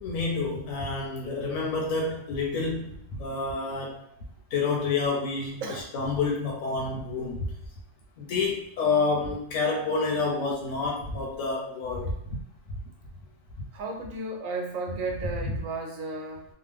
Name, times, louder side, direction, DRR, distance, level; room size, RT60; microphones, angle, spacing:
voice 1, 0.0-2.9 3.2-4.0 4.5-5.6 5.9-7.4 8.2-12.4, left 4 dB, 80° left, -2 dB, 1.0 m, -28 dB
voice 2, 13.7-16.5, right 3 dB, 80° right, 2 dB, 1.1 m, -34 dB
2.9 x 2.0 x 3.3 m, 0.76 s
omnidirectional pair, 1.4 m